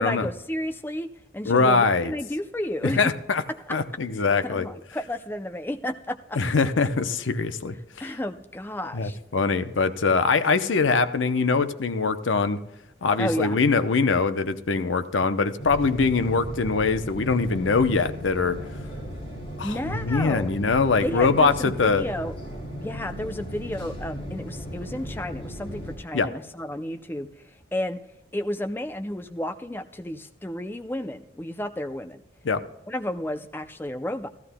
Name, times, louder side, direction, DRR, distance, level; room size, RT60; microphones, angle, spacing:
voice 1, 0.0-3.1 3.7-3.8 4.2-6.4 8.0-9.2 13.2-13.6 19.6-20.5 21.0-22.3 22.8-27.3 27.7-28.0 28.3-32.2 32.9-34.3, left 1 dB, 10° left, 8 dB, 0.4 m, -32 dB
voice 2, 1.4-2.1 2.8-3.4 3.7-4.7 6.4-7.7 8.0-8.1 8.9-12.6 13.0-18.6 19.6-22.0 26.1-26.3 32.4-32.6, left 4 dB, 80° left, 11 dB, 0.7 m, -23 dB
sound 1, 15.6-26.0, equal, 30° left, 4.8 m, -36 dB
15.5 x 14.5 x 2.2 m, 0.88 s
head